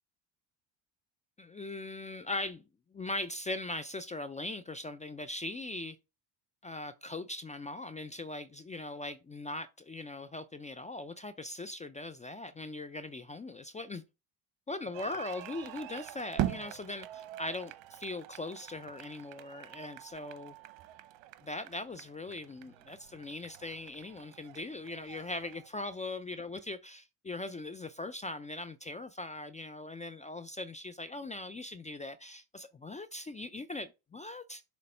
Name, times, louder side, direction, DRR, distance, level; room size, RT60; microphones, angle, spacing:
voice 1, 1.4-2.6 2.9-6.0 6.6-14.0 14.7-20.5 21.4-34.6, left 2 dB, 15° left, 0.3 m, -40 dB
sound 1, 14.9-25.7, right 13 dB, 65° right, 0.8 m, -43 dB
6.8 x 3.0 x 5.4 m
supercardioid pair, 80°, 49 cm